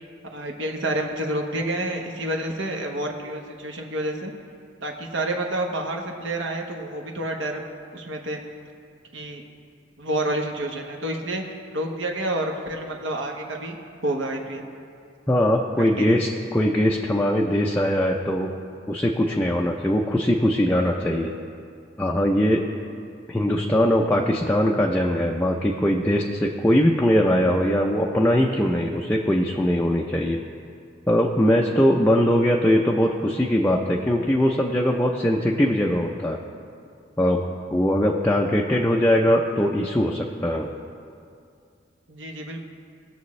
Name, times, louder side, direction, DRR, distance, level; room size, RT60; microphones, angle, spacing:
voice 1, 0.3-4.3 4.8-7.6 7.9-8.4 9.1-9.4 10.0-11.4 11.7-13.8 14.0-14.7 15.8-16.2 42.1-42.7, right 1 dB, 70° right, 1 dB, 1.1 m, -29 dB
voice 2, 15.3-18.5 18.9-21.3 22.0-22.6 23.3-30.4 31.1-36.4 37.2-37.4 37.7-40.7, equal, 10° left, -1 dB, 0.5 m, -21 dB
20.0 x 7.0 x 3.2 m, 2.4 s
head